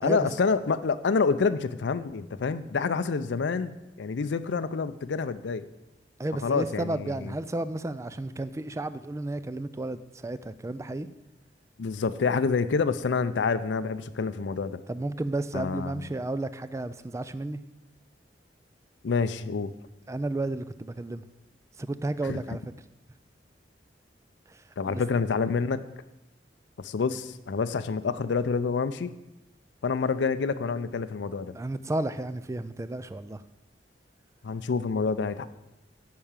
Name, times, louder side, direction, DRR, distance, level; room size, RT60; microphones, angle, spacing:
voice 1, 0.0-5.7 6.4-7.3 11.8-14.8 15.5-16.0 19.0-19.7 22.2-22.4 24.8-25.8 26.8-29.1 29.8-31.5 34.4-35.5, left 5 dB, 80° left, 11 dB, 0.5 m, -27 dB
voice 2, 6.2-11.1 14.9-17.6 20.1-21.2 21.8-22.6 24.5-25.0 31.5-33.4, right 2 dB, 15° right, 13 dB, 0.3 m, -32 dB
10.5 x 4.8 x 7.2 m, 0.96 s
head